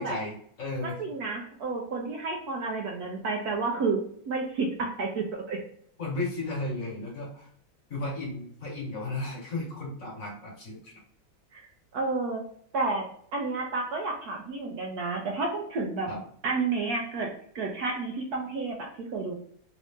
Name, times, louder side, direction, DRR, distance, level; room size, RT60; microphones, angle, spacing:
voice 1, 0.0-1.0 6.0-7.5 7.9-10.9 16.1-16.2, left 2 dB, 50° left, -3 dB, 1.5 m, -34 dB
voice 2, 0.8-5.6 11.5-11.6 11.9-12.4 12.7-13.0 13.3-16.1 16.4-17.3 17.5-19.3, right 3 dB, 65° right, 0 dB, 1.0 m, -30 dB
3.7 x 2.6 x 3.5 m, 0.62 s
omnidirectional pair, 2.0 m